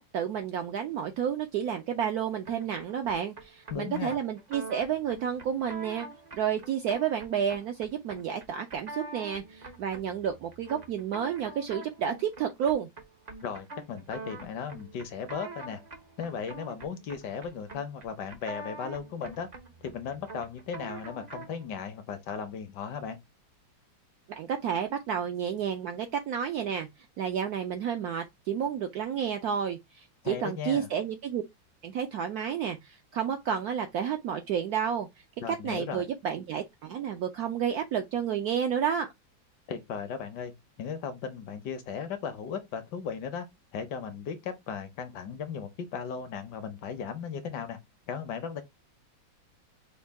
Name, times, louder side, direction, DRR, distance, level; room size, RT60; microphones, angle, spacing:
voice 1, 0.0-6.1 6.4-12.9 24.3-26.9 27.2-31.4 31.8-35.1 35.5-39.1, right 8 dB, 75° right, 0.9 m, -31 dB
sound 1, 2.4-21.6, right 3 dB, 55° right, 0.4 m, -45 dB
voice 2, 3.7-4.2 13.4-15.8 16.2-19.5 19.8-23.2 30.2-30.9 35.4-36.1 39.7-40.5 40.8-43.5 43.7-47.8 48.1-48.6, left 6 dB, 70° left, 1.2 m, -36 dB
5.4 x 2.2 x 3.3 m
omnidirectional pair, 2.1 m